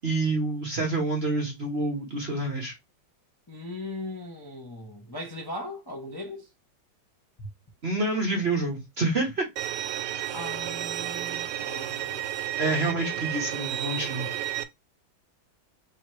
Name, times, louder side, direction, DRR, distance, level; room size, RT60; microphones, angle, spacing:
voice 1, 0.0-2.7 7.8-9.5 12.6-14.3, right 2 dB, 40° right, 1.0 m, -27 dB
voice 2, 3.5-6.5 7.4-7.5 10.3-12.3, left 2 dB, 20° left, 0.7 m, -38 dB
Bowed string instrument, 9.6-14.6, right 12 dB, 75° right, 1.1 m, -32 dB
3.6 x 3.0 x 4.6 m
omnidirectional pair, 2.1 m